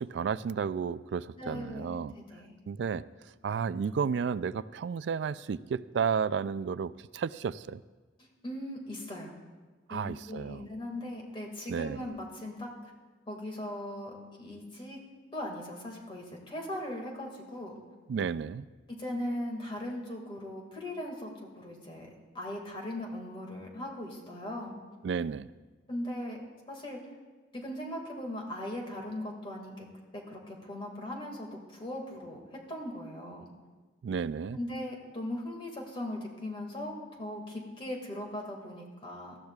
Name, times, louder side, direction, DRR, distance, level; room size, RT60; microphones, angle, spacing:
voice 1, 0.0-2.1 2.7-3.0 3.4-7.8 9.9-10.7 11.7-12.0 18.1-18.7 25.0-25.5 34.0-34.6, right 6 dB, 75° right, 17 dB, 0.3 m, -32 dB
voice 2, 1.4-2.6 8.2-9.4 9.9-12.9 13.3-15.0 15.3-17.7 18.9-22.1 22.3-24.8 25.9-26.4 26.7-27.0 27.5-29.9 30.1-33.5 34.5-39.4, left 1 dB, 30° left, 0 dB, 2.0 m, -39 dB
18.5 x 13.5 x 2.4 m, 1.3 s
head